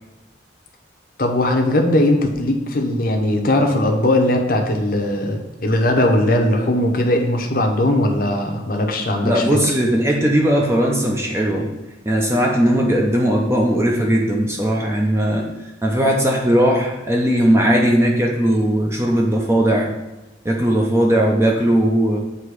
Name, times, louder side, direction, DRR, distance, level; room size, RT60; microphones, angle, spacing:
voice 1, 1.2-9.6, left 1 dB, 50° left, 3 dB, 0.8 m, -19 dB
voice 2, 9.2-11.7 12.1-15.4 15.8-19.9 20.4-22.2, right 1 dB, 15° right, -1 dB, 0.6 m, -18 dB
7.7 x 3.0 x 4.7 m, 1.0 s
head